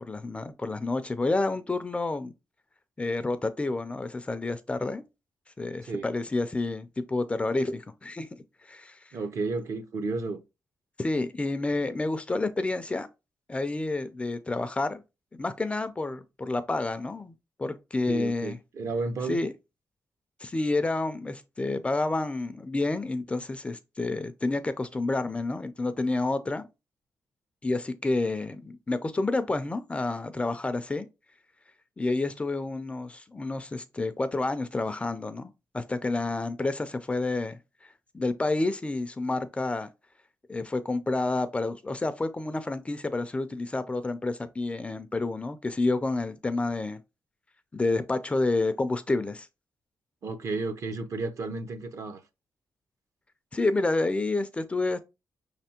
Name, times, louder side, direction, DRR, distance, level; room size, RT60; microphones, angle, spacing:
voice 1, 0.0-2.3 3.0-5.0 5.6-9.0 11.0-13.1 13.5-15.0 15.4-18.6 19.3-19.5 20.4-26.7 27.6-31.1 32.0-37.6 38.1-39.9 40.5-47.0 47.7-49.5 53.5-55.0, left 2 dB, 20° left, 0.4 m, -29 dB
voice 2, 9.1-10.4 18.1-19.4 50.2-52.2, right 3 dB, 55° right, 0.7 m, -32 dB
5.5 x 3.3 x 2.9 m
wide cardioid pair, 135°, 6 cm